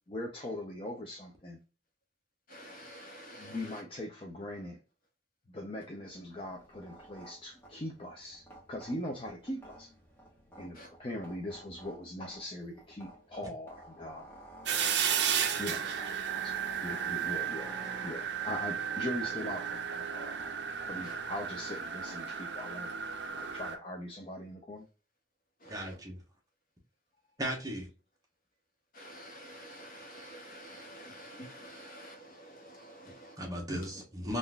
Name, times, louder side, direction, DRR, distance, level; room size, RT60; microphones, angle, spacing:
voice 1, 0.1-1.6 3.4-4.8 5.5-9.9 10.6-14.3 15.6-15.8 16.4-16.6 16.8-17.7 18.0-20.4 20.8-22.9 23.3-24.9, left 1 dB, 25° left, 0.5 m, -41 dB
voice 2, 2.5-3.8 10.7-10.9 15.8-15.9 19.4-19.5 21.0-21.2 25.6-26.0 28.9-33.4 33.7-34.0, equal, 45° left, 1.0 m, -48 dB
sound 1, 6.1-22.2, right 2 dB, 10° left, 1.0 m, -53 dB
sound 2, 14.7-23.8, right 8 dB, 55° right, 0.5 m, -34 dB
voice 3, 25.7-26.2 27.4-27.9 33.4-34.4, equal, 20° right, 0.9 m, -36 dB
3.8 x 2.5 x 2.2 m
head